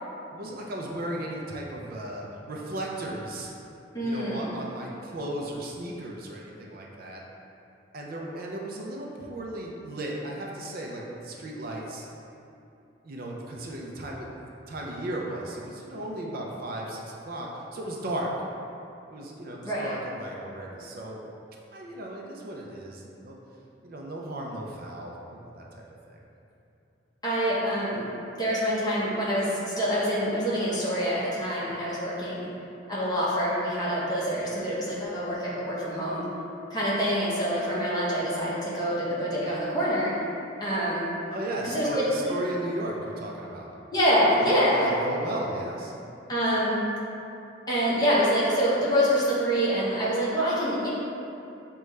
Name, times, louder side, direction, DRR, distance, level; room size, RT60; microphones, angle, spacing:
voice 1, 0.3-3.5 4.0-7.2 7.9-12.1 13.0-14.4 14.7-18.3 19.1-21.2 21.7-23.4 23.8-25.8 26.1-26.2 41.3-43.7 44.4-45.9, right 1 dB, 55° right, -2 dB, 0.4 m, -35 dB
voice 2, 3.9-4.5 19.6-19.9 27.2-28.0 28.4-32.5 32.9-36.3 36.7-40.1 40.6-41.1 41.7-42.3 43.9-44.9 46.3-46.8 47.7-50.9, equal, 20° left, -8 dB, 1.0 m, -26 dB
6.3 x 2.3 x 3.1 m, 2.7 s
head